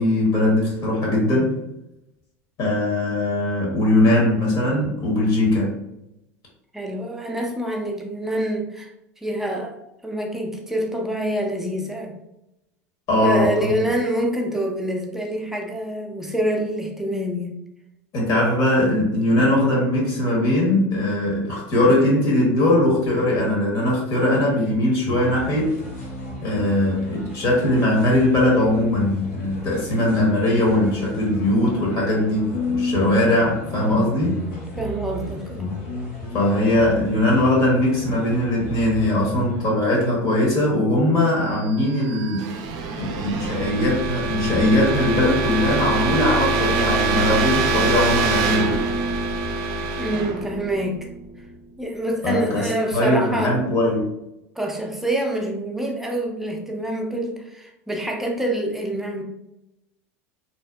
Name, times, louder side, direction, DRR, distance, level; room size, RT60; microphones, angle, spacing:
voice 1, 0.0-1.5 2.6-5.8 13.1-13.7 18.1-25.7 26.4-34.4 36.3-42.5 43.0-48.8 52.2-54.1, left 1 dB, 55° left, -2 dB, 1.0 m, -20 dB
voice 2, 6.7-8.9 9.2-9.8 10.0-12.1 13.2-17.6 34.8-35.8 50.0-51.0 51.8-53.6 54.6-59.2, right 1 dB, 5° right, 0 dB, 0.5 m, -26 dB
sound 1, 25.0-39.7, left 2 dB, 80° left, 1.3 m, -33 dB
sound 2, 41.7-51.5, right 3 dB, 55° right, 0.4 m, -24 dB
2.7 x 2.1 x 2.3 m, 0.86 s
hypercardioid pair, 90°, 8 cm